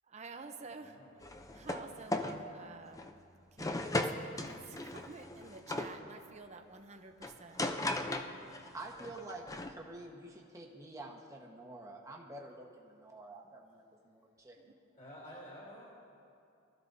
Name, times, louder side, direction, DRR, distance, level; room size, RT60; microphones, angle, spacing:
voice 1, 0.1-1.0 1.5-3.2 3.5-7.7 14.6-14.7, right 4 dB, 35° right, 6 dB, 0.7 m, -50 dB
voice 2, 0.8-1.1 14.9-15.8, equal, 40° left, -4 dB, 3.3 m, -50 dB
sound 1, 1.2-1.9 2.1-2.4 2.9-3.1 3.6-5.9 7.2-8.7 9.0-9.7, left 2 dB, 15° left, 0.6 m, -37 dB
voice 3, 8.6-14.5, right 2 dB, 15° right, -1 dB, 1.3 m, -48 dB
22.5 x 13.5 x 2.7 m, 2.5 s
head